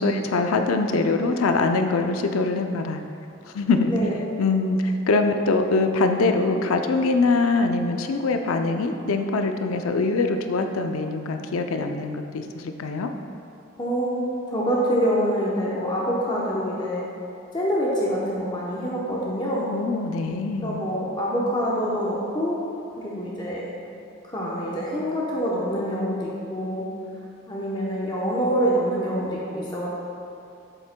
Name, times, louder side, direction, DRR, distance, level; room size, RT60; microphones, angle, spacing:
voice 1, 0.0-3.0 3.5-3.9 4.4-13.1 19.7-20.8, left 3 dB, 90° left, 6 dB, 0.5 m, -23 dB
voice 2, 13.8-17.0 17.5-19.7 20.6-22.6 23.0-23.7 24.2-26.8 27.5-29.9, equal, 20° left, -5 dB, 0.8 m, -26 dB
7.8 x 7.3 x 2.2 m, 2.7 s
head